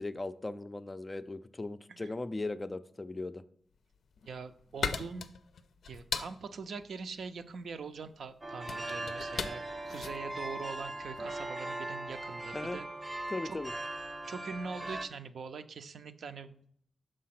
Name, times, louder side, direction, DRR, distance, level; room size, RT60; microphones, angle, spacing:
voice 1, 0.0-3.4 12.5-12.8 13.3-13.7, left 2 dB, 20° left, 12 dB, 0.3 m, -38 dB
sound 1, 3.9-11.4, left 6 dB, 85° left, 0.4 m, -40 dB
voice 2, 4.3-5.3 5.9-12.8 13.1-13.6 14.3-16.7, right 5 dB, 80° right, 10 dB, 0.5 m, -43 dB
sound 2, 8.4-15.1, right 1 dB, 25° right, 0.6 m, -39 dB
6.3 x 4.7 x 5.8 m, 0.65 s
wide cardioid pair, 165°, 0 cm